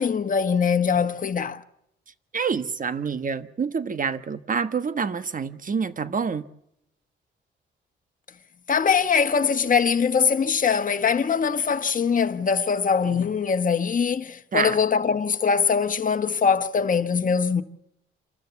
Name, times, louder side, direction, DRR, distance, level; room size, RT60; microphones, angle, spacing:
voice 1, 0.0-1.6 8.7-17.6, left 6 dB, 40° left, 1.4 m, -22 dB
voice 2, 2.3-6.4 14.5-14.8, right 5 dB, 40° right, 1.3 m, -27 dB
28.0 x 13.0 x 8.2 m
cardioid pair, 75°, 21 cm